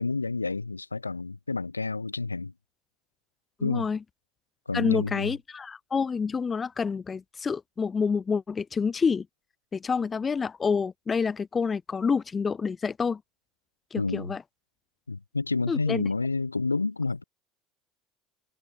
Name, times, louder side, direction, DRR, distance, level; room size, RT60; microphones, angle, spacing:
voice 1, 0.0-2.5 3.6-3.9 4.7-5.3 14.0-14.3 15.1-17.2, left 3 dB, 90° left, 4.2 m, -29 dB
voice 2, 3.6-4.0 4.7-9.2 9.7-13.2 13.9-14.4 15.7-16.0, left 5 dB, 25° left, 1.3 m, -28 dB
figure-of-eight pair, 65°, 0 cm